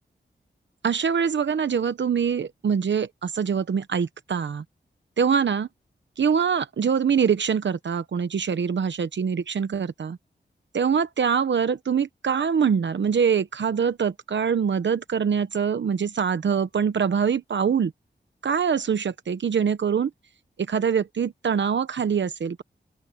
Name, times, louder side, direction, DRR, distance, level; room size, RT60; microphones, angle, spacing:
voice 1, 0.8-4.6 5.2-5.7 6.2-10.2 10.7-17.9 18.4-20.1 20.6-22.6, right 7 dB, 80° right, 1.0 m, -24 dB
open air
wide cardioid pair, 65°, 19 cm